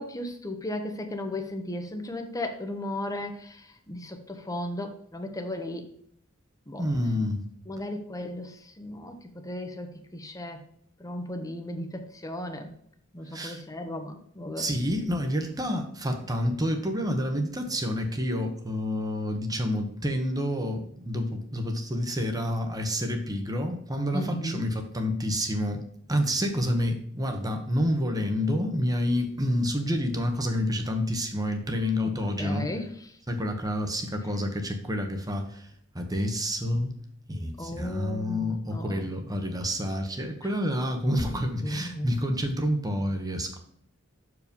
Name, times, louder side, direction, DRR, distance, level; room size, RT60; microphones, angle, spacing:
voice 1, 0.0-5.9 6.7-6.8 7.7-9.2 9.4-10.6 11.0-12.7 13.1-14.7 24.1-24.6 32.0-32.1 32.4-32.9 37.6-39.1 40.4-40.5 41.3-42.1, left 1 dB, 15° left, 5 dB, 0.9 m, -35 dB
voice 2, 6.8-7.4 13.3-13.6 14.6-25.8 26.1-32.7 33.3-36.9 37.3-43.6, equal, 20° right, 5 dB, 1.1 m, -28 dB
6.7 x 4.8 x 5.3 m, 0.67 s
head